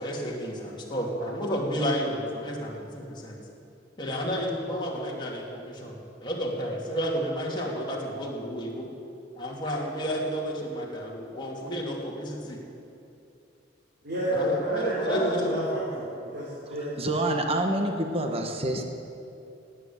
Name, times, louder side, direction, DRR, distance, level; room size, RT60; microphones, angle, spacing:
voice 1, 0.0-3.4 4.0-8.9 9.3-12.6 14.3-15.5, equal, 25° left, -4 dB, 2.9 m, -31 dB
voice 2, 14.0-17.0, right 1 dB, 55° right, -8 dB, 3.8 m, -30 dB
voice 3, 16.7-18.9, right 1 dB, 30° right, 3 dB, 1.3 m, -27 dB
18.0 x 9.1 x 8.8 m, 2.7 s
head